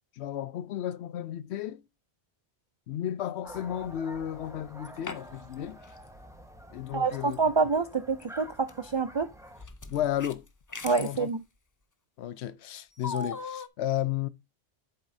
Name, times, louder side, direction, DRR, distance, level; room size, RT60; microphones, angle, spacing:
voice 1, 0.2-1.8 2.9-5.8 6.7-7.4 9.9-10.4 11.0-11.3 12.2-14.3, left 11 dB, 80° left, 0.8 m, -33 dB
sound 1, 3.4-9.6, equal, 5° right, 1.1 m, -48 dB
sound 2, 4.6-5.5 5.8-6.0 7.3-7.4 8.2-8.7 9.6-11.2 13.0-13.7, left 3 dB, 30° left, 0.4 m, -39 dB
voice 2, 6.9-9.3 10.8-11.4, right 4 dB, 50° right, 0.3 m, -27 dB
8.1 x 7.3 x 2.7 m
omnidirectional pair, 1.1 m